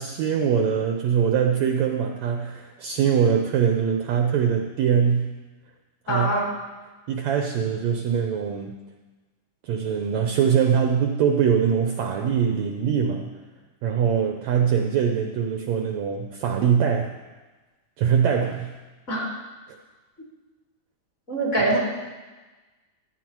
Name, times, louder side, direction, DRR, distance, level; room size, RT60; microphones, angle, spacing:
voice 1, 0.0-5.3 6.1-6.3 7.1-8.8 9.6-13.4 13.8-17.1 18.0-18.7, right 7 dB, 70° right, 4 dB, 1.8 m, -22 dB
voice 2, 6.1-6.4 19.1-19.3 21.3-21.8, right 1 dB, 20° left, -4 dB, 3.1 m, -23 dB
14.5 x 12.0 x 4.6 m, 1.2 s
omnidirectional pair, 3.8 m